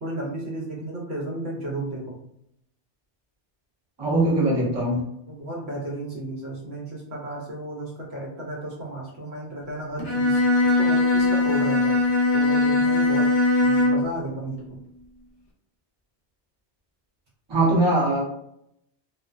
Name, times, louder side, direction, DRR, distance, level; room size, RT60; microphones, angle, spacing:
voice 1, 0.0-2.2 5.3-12.0 12.3-13.3 13.6-14.8, right 1 dB, 65° right, -3 dB, 1.0 m, -33 dB
voice 2, 4.0-5.0 17.5-18.2, right 2 dB, 25° right, -6 dB, 0.8 m, -21 dB
Bowed string instrument, 10.0-14.2, left 2 dB, 60° left, 0.8 m, -20 dB
2.4 x 2.1 x 2.4 m, 0.74 s
omnidirectional pair, 1.2 m